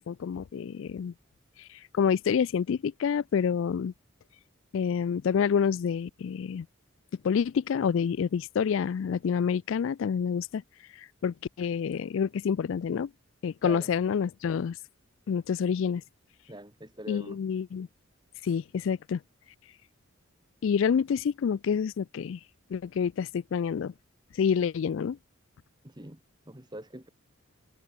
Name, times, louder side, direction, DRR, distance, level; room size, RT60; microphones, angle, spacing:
voice 1, 0.1-1.1 1.9-3.9 4.7-6.7 7.2-10.6 11.2-13.1 13.4-14.8 15.3-16.0 17.1-17.9 18.4-19.2 20.6-22.4 22.7-23.9 24.4-25.2, left 7 dB, 65° left, 0.3 m, -28 dB
voice 2, 16.5-17.4 25.8-26.2 26.5-27.1, right 1 dB, 20° right, 2.3 m, -42 dB
head